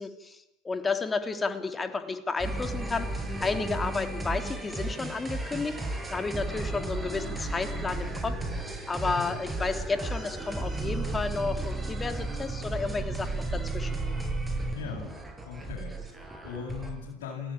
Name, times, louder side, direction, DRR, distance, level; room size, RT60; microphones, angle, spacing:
voice 1, 0.0-5.8 6.1-13.9, left 4 dB, 20° left, 8 dB, 3.1 m, -32 dB
sound 1, 2.4-16.9, right 2 dB, 10° right, 7.1 m, -34 dB
voice 2, 14.7-15.1 15.5-17.5, left 7 dB, 70° left, -3 dB, 7.6 m, -39 dB
29.5 x 16.5 x 9.0 m, 0.96 s
hypercardioid pair, 80°, 0 cm